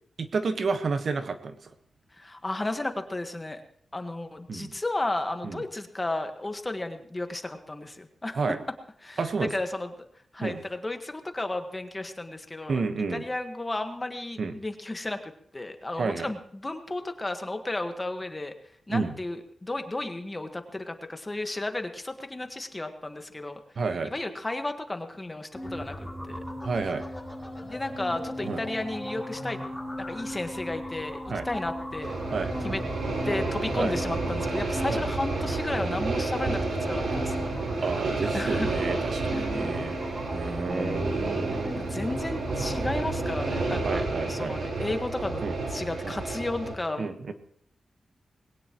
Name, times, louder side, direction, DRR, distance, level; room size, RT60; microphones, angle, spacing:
voice 1, 0.2-1.5 4.5-4.7 5.4-5.6 8.3-8.6 9.2-9.5 10.4-10.6 12.7-13.2 14.4-14.5 16.0-16.3 18.9-19.1 23.8-24.1 26.6-27.0 28.4-28.6 31.3-31.4 32.3-32.5 33.8-33.9 34.9-35.0 37.8-40.0 40.3-41.9 43.8-44.6 45.4-45.5 46.0-46.1 47.0-47.3, right 4 dB, 60° right, 8 dB, 1.2 m, -30 dB
voice 2, 2.1-3.6 3.9-8.4 9.0-10.1 10.3-12.8 13.1-18.5 18.9-23.6 24.0-26.4 27.6-29.6 30.0-31.2 31.4-32.2 32.6-32.8 33.2-37.4 37.7-37.8 38.3-38.7 39.2-40.0 40.5-41.5 41.9-45.4 45.7-47.3, left 2 dB, 20° left, 7 dB, 1.5 m, -33 dB
sound 1, 25.5-43.7, left 1 dB, ahead, 7.6 m, -37 dB
sound 2, 32.0-46.7, right 3 dB, 85° right, 3.9 m, -30 dB
21.0 x 17.5 x 3.0 m, 0.63 s
wide cardioid pair, 115°, 0 cm